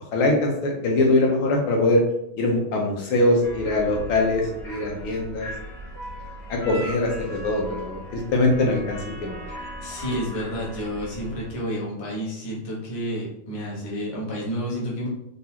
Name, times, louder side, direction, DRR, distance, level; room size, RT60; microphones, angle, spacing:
voice 1, 0.1-2.0 2.4-5.5 6.5-9.3, left 2 dB, 80° left, 0 dB, 1.8 m, -22 dB
sound 1, 3.4-11.5, equal, 50° left, 1.5 m, -38 dB
voice 2, 9.8-15.1, equal, 25° left, -4 dB, 0.7 m, -30 dB
4.0 x 3.9 x 2.8 m, 0.79 s
omnidirectional pair, 2.3 m